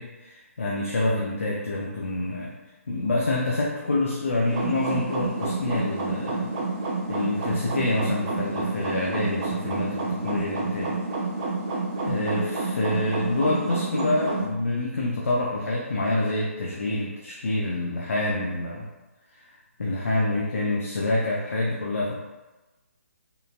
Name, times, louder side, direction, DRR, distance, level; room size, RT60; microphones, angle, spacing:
voice 1, 0.0-2.5 2.9-6.5 7.1-11.0 12.1-18.9 19.8-22.1, left 2 dB, 60° left, -4 dB, 0.5 m, -27 dB
sound 1, 4.5-14.5, right 3 dB, 25° right, 0.5 m, -29 dB
3.7 x 2.7 x 2.3 m, 1.1 s
figure-of-eight pair, 135°, 8 cm